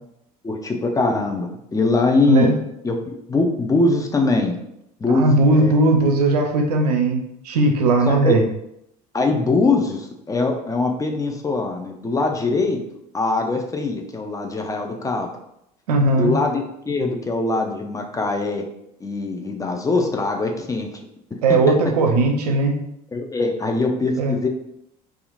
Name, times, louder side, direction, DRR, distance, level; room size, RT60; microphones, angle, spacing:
voice 1, 0.4-2.5 2.8-4.5 5.0-5.8 8.1-8.4 9.1-12.8 13.1-15.3 16.2-18.7 19.0-20.9 21.7-21.8 23.1-24.5, left 3 dB, 15° left, 3 dB, 0.4 m, -22 dB
voice 2, 5.1-8.4 15.9-16.3 21.4-22.8 24.2-24.4, right 2 dB, 80° right, 3 dB, 0.4 m, -18 dB
2.8 x 2.4 x 2.4 m, 0.79 s
hypercardioid pair, 65°, 20 cm